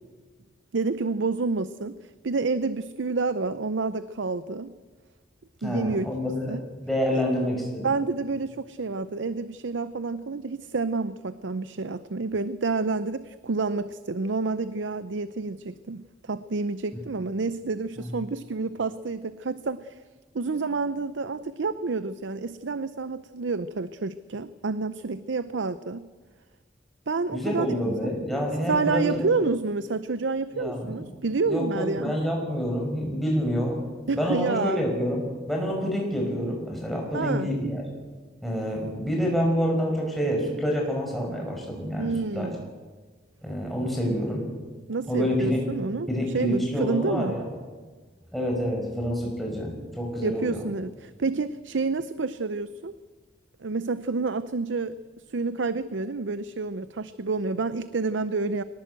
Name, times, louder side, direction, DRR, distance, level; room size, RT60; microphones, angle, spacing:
voice 1, 0.7-2.0 2.2-4.7 5.6-6.1 6.5-6.6 7.1-7.2 7.8-20.0 20.3-26.1 27.1-27.8 28.0-28.1 28.7-32.2 34.1-34.9 37.1-37.5 42.0-42.7 44.9-46.1 46.3-47.4 50.2-52.9 53.6-54.9 55.3-58.6, right 4 dB, 85° right, 14 dB, 0.6 m, -29 dB
voice 2, 5.6-6.6 6.9-7.9 18.0-18.1 27.3-29.2 30.5-31.1 31.5-33.8 34.1-35.2 35.5-37.8 38.4-42.5 43.4-44.4 45.1-45.6 46.1-47.5 48.3-50.6, equal, ahead, -1 dB, 5.6 m, -27 dB
22.5 x 18.5 x 8.1 m, 1.4 s
head